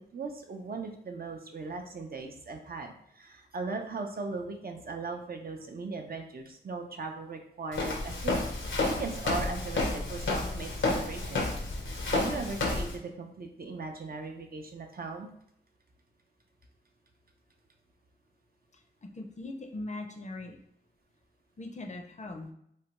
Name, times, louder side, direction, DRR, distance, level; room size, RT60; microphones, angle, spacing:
voice 1, 0.1-8.4 8.9-11.5 11.8-15.3, right 3 dB, 50° right, 3 dB, 0.5 m, -38 dB
Walk footsteps, 7.7-12.9, left 2 dB, 85° left, 0.6 m, -31 dB
voice 2, 19.0-20.6 21.6-22.5, left 2 dB, 40° left, 3 dB, 0.5 m, -40 dB
3.2 x 2.2 x 2.9 m, 0.73 s
cardioid pair, 45°, 19 cm